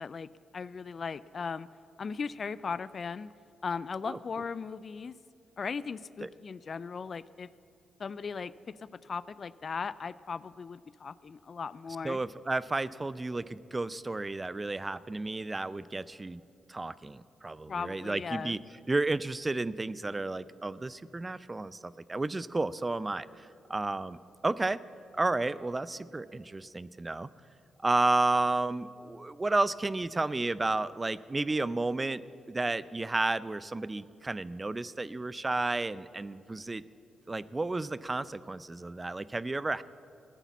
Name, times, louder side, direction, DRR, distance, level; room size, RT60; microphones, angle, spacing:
voice 1, 0.0-1.7 2.0-3.3 3.6-5.2 5.6-7.5 8.0-12.2 17.7-18.6, left 5 dB, 50° left, 18 dB, 0.4 m, -38 dB
voice 2, 12.0-16.4 16.7-18.6 18.9-24.2 24.4-24.8 25.2-27.3 27.8-32.2 32.5-36.8 37.3-39.8, right 2 dB, 25° right, 17 dB, 0.5 m, -32 dB
16.0 x 9.0 x 7.2 m, 2.6 s
hypercardioid pair, 45°, 0 cm